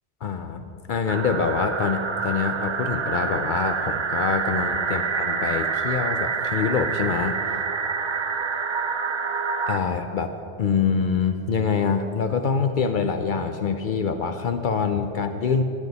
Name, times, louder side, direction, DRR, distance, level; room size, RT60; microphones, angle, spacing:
voice 1, 0.2-0.6 0.9-7.4 9.7-10.3 10.6-15.6, left 5 dB, 55° left, 7 dB, 0.6 m, -25 dB
sound 1, 1.1-9.8, right 5 dB, 45° right, 0.4 m, -27 dB
14.5 x 9.4 x 4.0 m, 2.8 s
omnidirectional pair, 1.1 m